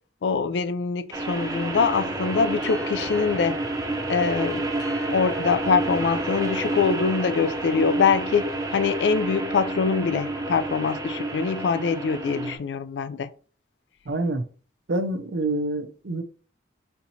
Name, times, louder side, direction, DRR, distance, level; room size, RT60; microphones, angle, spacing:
voice 1, 0.2-3.6 4.1-4.7 5.1-13.3, left 5 dB, 80° left, 0.4 m, -24 dB
sound 1, 1.1-12.6, right 2 dB, 20° right, 0.6 m, -29 dB
sound 2, 2.6-7.7, left 2 dB, 60° left, 1.4 m, -47 dB
voice 2, 14.1-14.4 14.9-16.2, right 2 dB, 70° right, 0.6 m, -26 dB
4.4 x 3.9 x 2.8 m
head